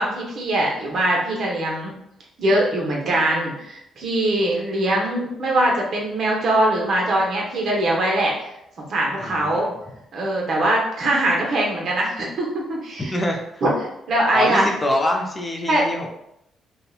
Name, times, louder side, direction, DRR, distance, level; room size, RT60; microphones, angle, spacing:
voice 1, 0.0-1.9 2.4-8.5 8.8-9.7 10.1-13.2 13.6-13.7 14.1-14.7 15.7-15.9, right 1 dB, 60° right, -2 dB, 0.8 m, -22 dB
voice 2, 9.2-9.7 13.1-13.6 14.3-16.1, left 1 dB, 20° left, 1 dB, 0.4 m, -25 dB
2.8 x 2.1 x 2.3 m, 0.80 s
cardioid pair, 90°, 0 cm